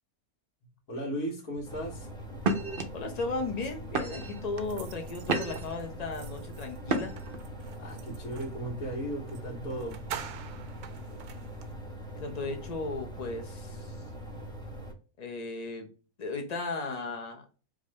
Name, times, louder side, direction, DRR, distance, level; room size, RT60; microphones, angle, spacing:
voice 1, 0.9-2.1 7.8-10.0, right 1 dB, 70° left, -3 dB, 1.6 m, -36 dB
sound 1, 1.5-1.8 2.4-2.8 3.5-3.6 3.9-4.4 4.9-5.8 6.8-7.4, right 3 dB, 50° right, 0.7 m, -31 dB
sound 2, 1.6-14.9, right 1 dB, 5° left, 0.8 m, -42 dB
voice 2, 2.9-7.1 12.2-13.9 15.2-15.9 16.2-17.4, left 3 dB, 35° left, 4 dB, 0.8 m, -35 dB
sound 3, 4.6-8.6 9.3-9.4 9.7-11.7, right 9 dB, 85° right, 1.1 m, -46 dB
4.9 x 2.7 x 3.2 m, 0.35 s
omnidirectional pair, 1.5 m